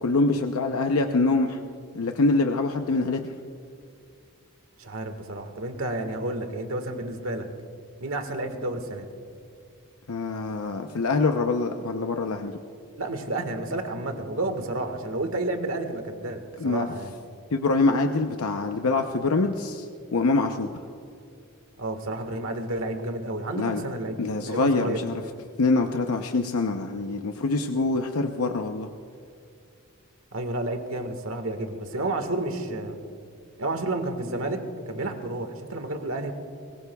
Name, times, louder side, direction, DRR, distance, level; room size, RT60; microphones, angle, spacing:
voice 1, 0.0-1.6 1.9-3.3 10.1-12.5 16.6-16.9 17.5-20.7 23.5-23.8 24.2-25.2 25.6-28.9, left 3 dB, 85° left, 4 dB, 0.7 m, -25 dB
voice 2, 4.8-7.4 8.0-9.1 13.0-17.1 21.8-24.1 24.5-25.3 30.3-33.0 33.6-34.6 34.9-36.3, right 2 dB, 70° right, 6 dB, 1.6 m, -31 dB
24.0 x 20.5 x 2.3 m, 2.5 s
head